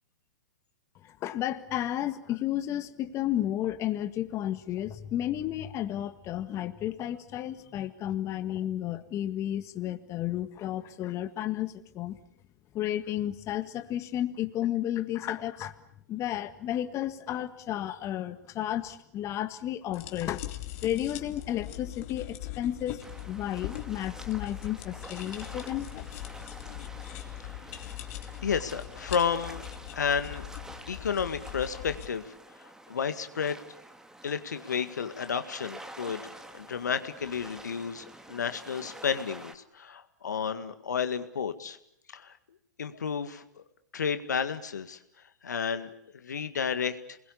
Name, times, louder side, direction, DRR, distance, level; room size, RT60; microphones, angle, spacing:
voice 1, 1.0-12.2 12.7-15.8 16.1-20.4 20.8-23.0 23.3-26.1, left 12 dB, 30° left, 9 dB, 1.8 m, -32 dB
sound 1, 19.9-32.1, left 14 dB, 50° left, 2.8 m, -41 dB
sound 2, 23.0-39.6, right 1 dB, 5° right, 2.2 m, -48 dB
voice 2, 28.4-29.6 29.9-30.5 30.9-32.3 32.6-33.6 34.2-41.8 42.1-42.3 42.8-43.6 43.9-45.0 45.4-47.2, left 6 dB, 80° left, 10 dB, 1.9 m, -32 dB
28.5 x 21.5 x 8.5 m, 0.73 s
hypercardioid pair, 110°, 9 cm